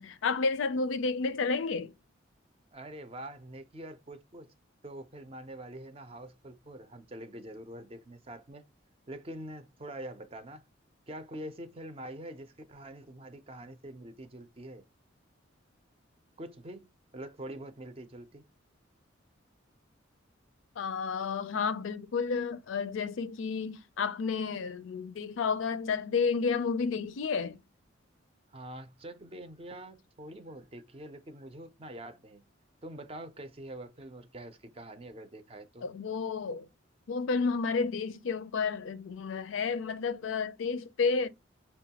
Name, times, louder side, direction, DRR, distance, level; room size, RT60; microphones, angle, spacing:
voice 1, 0.0-1.9 20.8-27.6 35.8-36.7 37.1-41.3, left 5 dB, 75° left, 0.4 m, -31 dB
voice 2, 2.7-4.5 4.8-8.6 9.1-10.6 11.1-14.8 16.4-18.4 28.5-32.4 32.8-35.9, right 1 dB, 30° right, 0.5 m, -45 dB
5.7 x 2.2 x 2.8 m
head